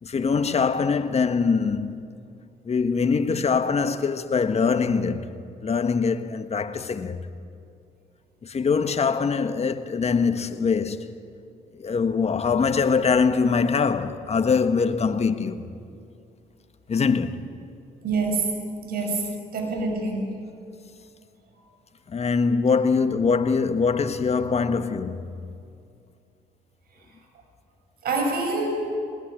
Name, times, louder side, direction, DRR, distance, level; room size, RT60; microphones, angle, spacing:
voice 1, 0.0-2.1 2.6-7.2 8.4-11.2 11.8-15.8 16.9-17.5 22.1-25.6, left 5 dB, 40° left, 1.5 m, -23 dB
voice 2, 18.0-18.5 18.8-20.3 28.0-28.9, right 3 dB, 70° right, 6.1 m, -26 dB
21.0 x 20.0 x 8.8 m
supercardioid pair, 70°, 16 cm